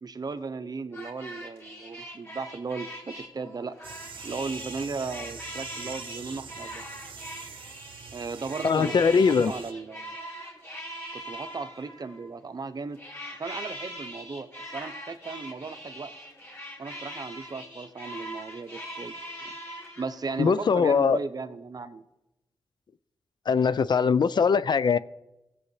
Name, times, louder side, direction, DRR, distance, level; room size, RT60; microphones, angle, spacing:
voice 1, 0.0-3.8 4.2-6.8 8.1-10.2 11.1-13.0 13.4-16.1 16.8-19.2 20.0-22.0, right 4 dB, 50° right, 11 dB, 0.8 m, -36 dB
sound 1, 0.9-12.3 12.9-20.7, equal, 30° left, 2.3 m, -42 dB
sound 2, 3.8-9.7, right 6 dB, 85° right, 0.7 m, -44 dB
voice 2, 8.6-9.5 20.4-21.2 23.5-25.0, left 5 dB, 60° left, 16 dB, 0.4 m, -21 dB
17.5 x 7.7 x 3.3 m, 0.95 s
cardioid pair, 55°, 8 cm